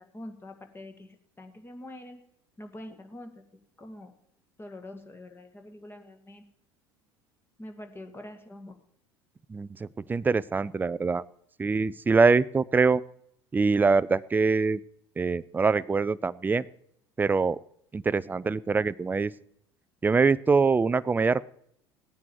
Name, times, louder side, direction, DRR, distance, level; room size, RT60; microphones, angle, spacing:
voice 1, 0.0-2.2 2.6-3.4 3.8-4.1 4.6-6.4 7.6-8.8, left 1 dB, 15° left, 6 dB, 2.0 m, -44 dB
voice 2, 9.5-11.2 11.6-13.0 13.5-14.8 15.2-16.7 17.2-17.6 17.9-19.3 20.0-21.4, right 4 dB, 15° right, 19 dB, 0.4 m, -24 dB
17.0 x 9.5 x 4.6 m, 0.71 s
figure-of-eight pair, 70°, 14 cm